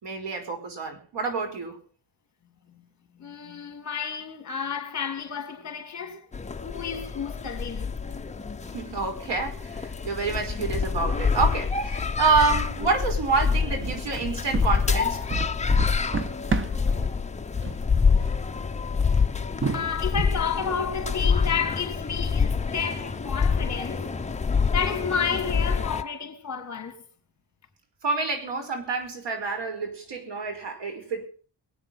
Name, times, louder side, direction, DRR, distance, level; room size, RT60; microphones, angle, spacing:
voice 1, 0.0-1.8 8.7-15.3 28.0-31.3, right 4 dB, 75° right, 5.2 m, -28 dB
voice 2, 3.2-6.3 6.6-8.3 19.7-24.1 24.7-27.0, left 6 dB, 40° left, 3.4 m, -31 dB
sound 1, 6.3-26.0, left 5 dB, 15° left, 0.8 m, -27 dB
sound 2, 13.8-17.0 17.5-17.9 18.1-18.4 18.9-19.1 19.6-20.2, right 3 dB, 30° right, 1.3 m, -29 dB
23.5 x 8.9 x 5.9 m
wide cardioid pair, 165°, 42 cm